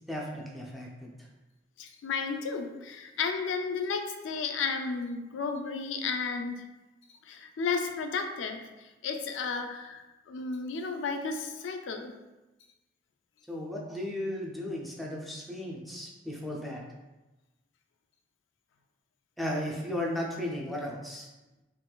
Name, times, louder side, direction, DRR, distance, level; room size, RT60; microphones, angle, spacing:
voice 1, 0.1-1.3 13.5-16.8 19.4-21.3, left 1 dB, ahead, -3 dB, 0.4 m, -35 dB
voice 2, 1.8-6.7 7.2-12.1, left 5 dB, 90° left, 5 dB, 0.3 m, -33 dB
3.9 x 2.3 x 2.2 m, 1.1 s
head